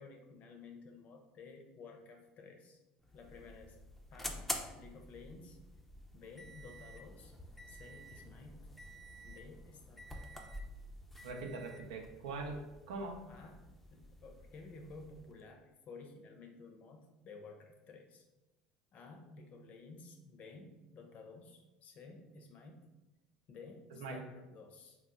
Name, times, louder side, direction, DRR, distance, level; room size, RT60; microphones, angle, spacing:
voice 1, 0.0-2.8 3.1-3.8 4.1-4.5 4.7-5.6 6.1-7.3 7.7-8.7 9.2-10.3 13.3-18.3 18.9-22.9 23.5-25.0, left 4 dB, 50° left, 4 dB, 0.6 m, -54 dB
sound 1, 3.0-15.4, equal, 5° left, 0.4 m, -48 dB
voice 2, 11.2-13.2 24.0-24.3, right 3 dB, 85° right, 3 dB, 0.5 m, -42 dB
3.0 x 2.0 x 3.6 m, 1.0 s
supercardioid pair, 90°, 3 cm